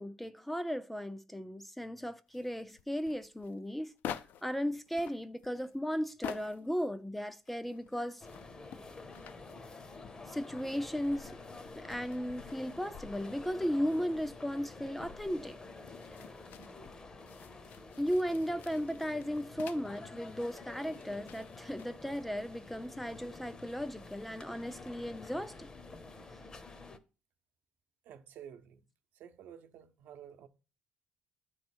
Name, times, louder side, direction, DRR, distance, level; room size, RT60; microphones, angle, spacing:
voice 1, 0.0-3.9 4.4-8.3 10.3-11.4 11.7-15.6 18.0-25.7, equal, 5° left, 0.4 m, -36 dB
sound 1, 2.3-4.5 4.9-6.8 7.2-10.5 11.0-20.0 20.3-21.9, left 9 dB, 70° left, 0.5 m, -49 dB
sound 2, 8.2-27.0, left 3 dB, 25° left, 0.7 m, -49 dB
voice 2, 28.0-28.8 29.1-30.5, right 9 dB, 70° right, 0.8 m, -51 dB
9.4 x 3.1 x 6.1 m
cardioid pair, 125°, 3 cm